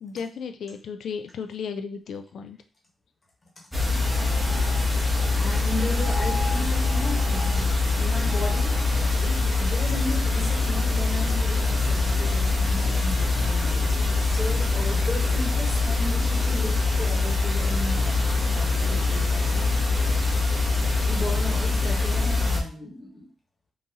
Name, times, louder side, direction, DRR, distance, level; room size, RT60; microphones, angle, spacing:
voice 1, 0.0-2.6, left 6 dB, 75° left, 0.4 m, -34 dB
sound 1, 3.7-22.6, left 3 dB, ahead, 1.0 m, -23 dB
sound 2, 4.0-9.5, left 1 dB, 75° right, 1.5 m, -39 dB
voice 2, 5.3-13.9 14.3-19.9 21.0-23.3, left 1 dB, 35° left, 1.2 m, -35 dB
3.7 x 2.7 x 2.8 m
cardioid pair, 115°, 0 cm